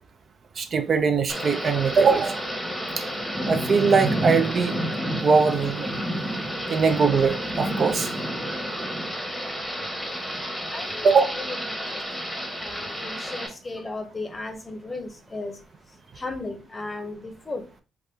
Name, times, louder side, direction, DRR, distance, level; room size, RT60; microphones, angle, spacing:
voice 1, 0.6-2.4 3.0-3.1 3.5-4.8 5.2-5.9 6.7-8.1 11.0-11.3, right 5 dB, 50° right, 0.4 m, -21 dB
Thunder / Rain, 1.3-13.5, equal, ahead, 0.9 m, -30 dB
voice 2, 10.7-12.0 12.6-15.6 16.2-17.6, left 2 dB, 25° left, 0.7 m, -35 dB
3.4 x 2.1 x 3.3 m
cardioid pair, 90°, 0 cm